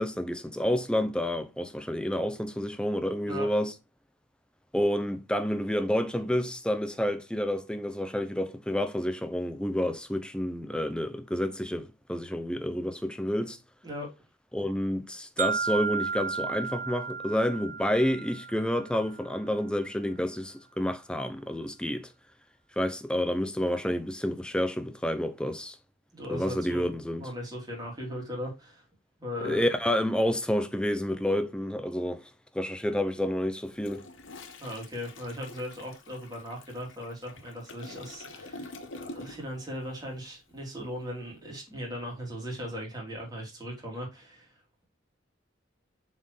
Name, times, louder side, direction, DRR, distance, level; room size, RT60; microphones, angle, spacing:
voice 1, 0.0-3.7 4.7-13.6 14.5-22.1 22.8-25.8 26.3-27.3 29.4-32.2 32.5-34.0, equal, 5° left, 0.7 m, -29 dB
sound 1, 15.4-19.4, right 5 dB, 40° right, 0.7 m, -34 dB
voice 2, 26.1-26.9 27.2-28.9 29.2-29.7 34.6-44.5, equal, 20° right, 3.2 m, -38 dB
Toilet flush, 33.6-39.6 39.9-40.2, left 2 dB, 80° left, 1.1 m, -46 dB
7.0 x 4.5 x 3.2 m
head